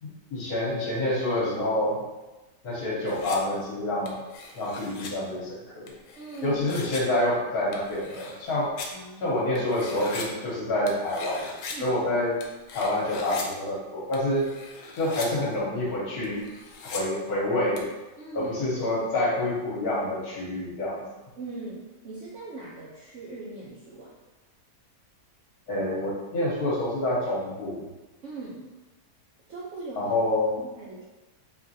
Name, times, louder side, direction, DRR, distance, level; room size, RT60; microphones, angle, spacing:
voice 1, 0.0-2.0 2.6-4.1 4.5-5.9 6.4-8.7 9.2-11.5 11.8-12.4 12.7-14.5 14.9-16.4 16.8-17.9 18.3-21.0 25.7-27.9 30.0-30.5, left 1 dB, 65° left, -5 dB, 1.4 m, -27 dB
sound 1, 3.1-3.4 4.1-5.1 5.9-7.0 7.7-8.9 9.5-10.2 10.9-11.7 12.4-13.4 14.1-15.3 15.5-15.6 16.2-17.0 17.8-17.9, left 4 dB, 85° left, 1.2 m, -40 dB
voice 2, 6.2-6.6 8.9-9.4 11.7-12.0 18.2-18.5 21.4-24.1 28.2-28.7 29.5-30.1 30.6-31.0, right 3 dB, 65° right, -6 dB, 0.7 m, -40 dB
3.6 x 3.1 x 2.7 m, 1.1 s
omnidirectional pair, 1.8 m